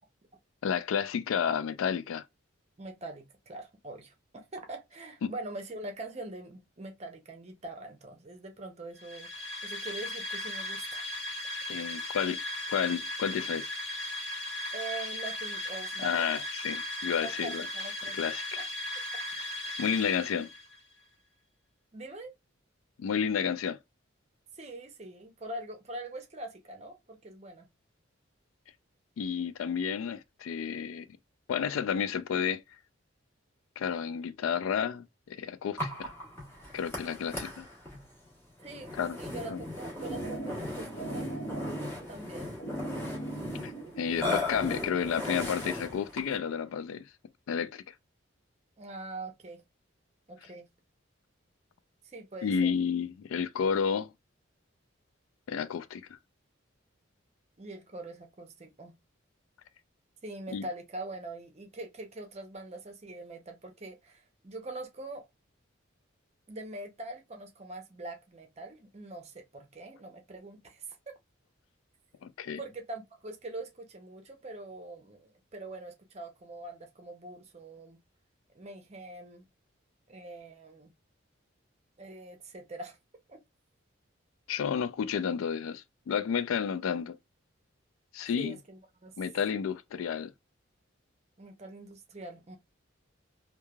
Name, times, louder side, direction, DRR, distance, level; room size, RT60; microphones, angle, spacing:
voice 1, 0.6-2.2 5.2-5.3 11.7-12.4 12.7-13.7 16.0-17.7 18.1-18.6 19.4-19.5 19.8-20.5 23.0-23.8 29.2-31.1 31.5-32.6 33.8-36.1 36.7-37.7 38.9-39.2 39.5-39.6 43.6-47.1 47.5-47.9 52.4-54.1 55.5-56.2 60.5-60.7 72.2-72.6 84.5-87.2 88.1-88.6 89.2-90.3, left 7 dB, 80° left, 0.3 m, -31 dB
voice 2, 2.8-11.1 14.7-16.3 17.2-18.2 18.6-18.7 21.9-22.3 24.6-27.6 38.6-38.9 39.2-41.3 42.1-42.6 48.8-49.6 50.3-50.7 52.0-52.7 57.6-59.0 60.2-65.3 66.5-70.8 72.6-78.0 78.5-79.4 80.1-80.9 82.0-83.0 83.3-83.4 88.4-89.1 91.4-92.6, right 2 dB, 30° right, 0.6 m, -43 dB
sound 1, 9.0-20.8, left 1 dB, 35° left, 1.3 m, -37 dB
Burping eructation, 35.8-46.5, left 2 dB, 10° left, 0.9 m, -38 dB
sound 2, 39.6-44.6, right 2 dB, 50° left, 0.9 m, -39 dB
3.1 x 2.2 x 2.2 m
head